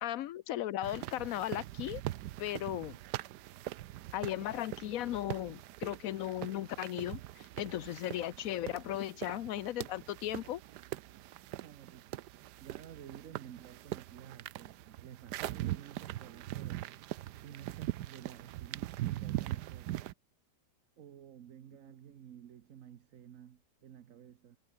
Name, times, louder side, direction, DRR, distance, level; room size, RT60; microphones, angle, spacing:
voice 1, 0.0-2.0 2.4-3.0 4.1-10.6, left 13 dB, 65° left, 1.0 m, -36 dB
sound 1, 0.8-20.1, right 14 dB, 90° right, 1.2 m, -42 dB
voice 2, 11.6-12.2 12.6-17.0 17.4-20.1 21.0-24.6, right 10 dB, 55° right, 1.2 m, -52 dB
omnidirectional pair, 1.8 m